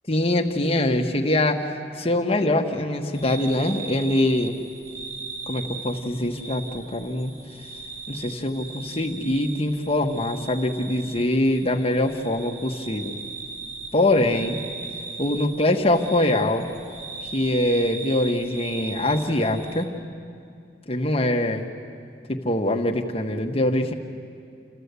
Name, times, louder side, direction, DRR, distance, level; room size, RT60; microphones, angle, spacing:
voice 1, 0.1-1.6 2.0-4.5 5.5-7.3 8.1-13.1 13.9-14.6 15.2-16.7 17.3-19.9 20.9-21.6 22.3-23.9, left 1 dB, 35° left, 2 dB, 1.4 m, -23 dB
sound 1, 3.1-19.8, right 4 dB, 50° right, 3.6 m, -38 dB
29.5 x 14.5 x 8.3 m, 2.3 s
head